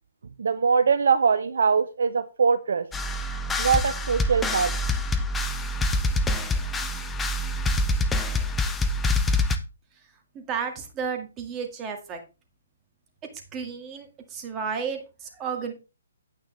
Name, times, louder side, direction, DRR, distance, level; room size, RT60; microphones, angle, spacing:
voice 1, 0.4-2.9 3.6-4.7, right 5 dB, 65° right, 12 dB, 0.7 m, -22 dB
sound 1, 2.9-9.6, left 2 dB, 10° left, 0.8 m, -26 dB
voice 2, 10.3-12.2 13.5-15.7, right 6 dB, 20° right, 4 dB, 2.0 m, -32 dB
9.0 x 8.8 x 3.4 m, 0.30 s
figure-of-eight pair, 135°, 0 cm